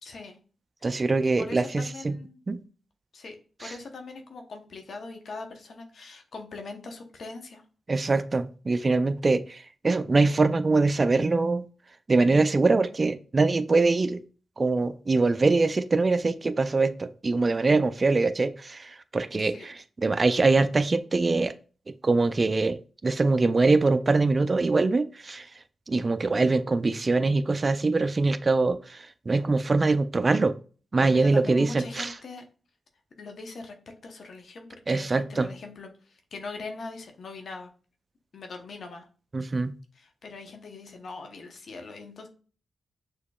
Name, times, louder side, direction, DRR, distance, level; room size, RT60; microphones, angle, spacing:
voice 1, 0.0-0.4 1.4-2.4 3.1-7.6 19.4-19.7 31.1-32.4 33.2-33.7 34.0-37.7 38.3-39.1 40.0-42.3, left 3 dB, 70° left, 4 dB, 0.8 m, -41 dB
voice 2, 0.8-2.2 2.5-2.6 3.6-3.8 7.9-11.7 12.1-14.2 14.6-21.5 21.9-25.5 25.9-30.6 30.9-32.2 34.9-35.5 39.3-39.8, right 3 dB, 45° right, 12 dB, 0.4 m, -23 dB
6.2 x 2.9 x 2.3 m, 0.39 s
supercardioid pair, 45°, 0 cm